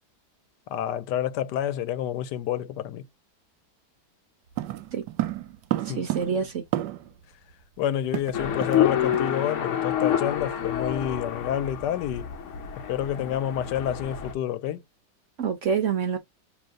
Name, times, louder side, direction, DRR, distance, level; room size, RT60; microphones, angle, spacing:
voice 1, 0.7-3.1 5.9-6.1 7.8-12.3 12.9-14.8, left 10 dB, 80° left, 1.2 m, -29 dB
sound 1, 4.6-7.2 7.5-7.6 7.8-8.9 9.1-9.3 9.7-9.9, right 15 dB, 75° right, 1.2 m, -31 dB
voice 2, 5.8-6.6 15.4-16.2, right 6 dB, 55° right, 1.0 m, -26 dB
sound 2, 8.3-14.3, left 10 dB, 55° left, 0.9 m, -28 dB
6.4 x 3.0 x 2.3 m
omnidirectional pair, 1.9 m